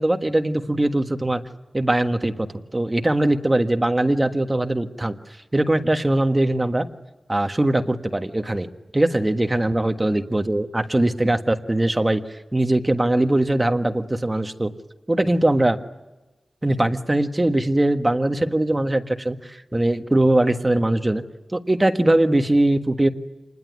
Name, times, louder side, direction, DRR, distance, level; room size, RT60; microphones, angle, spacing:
voice 1, 0.0-1.4 1.7-5.2 5.5-6.9 7.3-8.7 8.9-14.7 15.1-15.8 16.6-21.2 21.5-23.1, right 1 dB, 20° right, 6 dB, 1.5 m, -21 dB
27.0 x 21.0 x 9.5 m, 1.1 s
wide cardioid pair, 120°, 0 cm